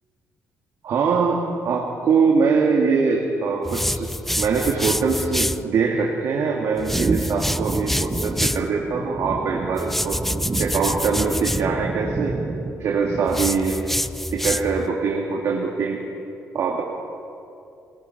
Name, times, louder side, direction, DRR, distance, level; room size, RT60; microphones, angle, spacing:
voice 1, 0.8-4.1 4.4-10.2 10.6-12.4 12.8-13.8 14.3-16.0 16.5-16.8, right 5 dB, 60° right, -1 dB, 2.2 m, -22 dB
sound 1, 3.6-5.6 6.8-8.7 9.8-11.7 13.3-14.9, left 1 dB, 5° left, 0.4 m, -26 dB
sound 2, 6.9-13.6, right 3 dB, 20° right, 0.9 m, -30 dB
22.5 x 20.0 x 5.9 m, 2.6 s
cardioid pair, 145°, 6 cm